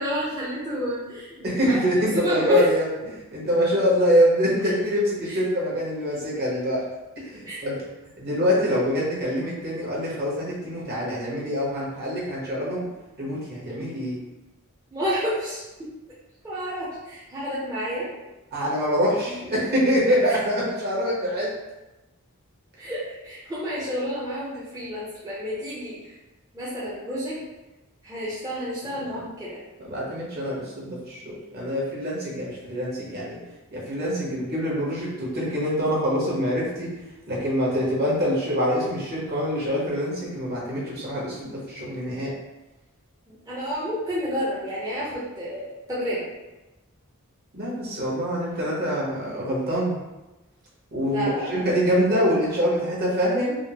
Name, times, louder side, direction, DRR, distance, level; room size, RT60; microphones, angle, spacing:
voice 1, 0.0-1.8 2.1-2.6 4.6-4.7 5.3-5.4 7.5-7.6 14.9-15.9 16.4-18.1 19.1-19.3 22.8-26.1 26.5-27.4 28.0-29.6 43.5-46.2 51.1-51.8, equal, 15° right, -9 dB, 0.5 m, -30 dB
voice 2, 1.4-6.9 7.2-7.9 8.2-12.9 13.2-14.2 18.5-21.5 28.9-29.1 29.8-33.4 33.7-36.9 37.3-42.3 47.5-50.0 50.9-53.6, equal, 45° right, -6 dB, 1.0 m, -25 dB
3.5 x 2.0 x 2.8 m, 1.0 s
head